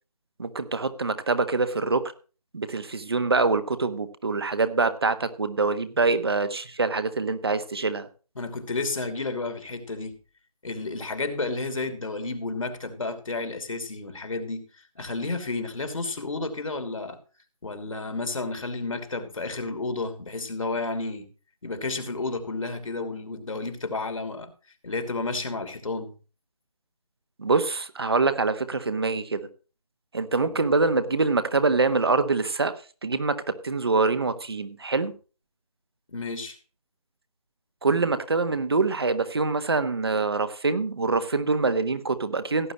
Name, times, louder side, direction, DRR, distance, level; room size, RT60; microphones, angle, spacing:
voice 1, 0.4-2.0 2.5-8.1 27.4-29.5 30.1-32.7 33.0-35.1 37.8-42.7, right 3 dB, 40° right, 1.2 m, -25 dB
voice 2, 8.4-10.2 10.6-17.2 17.6-21.3 21.6-24.5 24.8-26.2 30.4-30.6 36.1-36.6, left 3 dB, 55° left, 2.7 m, -31 dB
17.0 x 9.4 x 3.1 m
figure-of-eight pair, 170°, 20 cm